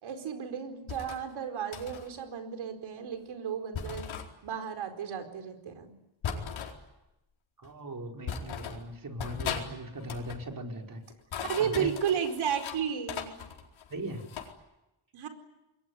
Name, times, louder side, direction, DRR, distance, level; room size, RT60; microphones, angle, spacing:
voice 1, 0.0-4.1 4.4-5.9 11.4-13.3 15.1-15.3, right 8 dB, 90° right, 7 dB, 4.7 m, -33 dB
sound 1, 0.9-1.2 1.7-2.1 3.7-4.3 6.2-6.8 7.6-7.7 8.3-8.8 9.2-9.7 10.0-10.4 11.1-12.8 13.1-14.5, left 7 dB, 85° left, 4.6 m, -37 dB
voice 2, 7.6-11.0 11.6-11.9 13.9-14.3, right 1 dB, 45° right, 2 dB, 5.1 m, -39 dB
27.0 x 22.0 x 9.8 m, 0.97 s
cardioid pair, 85°, 46 cm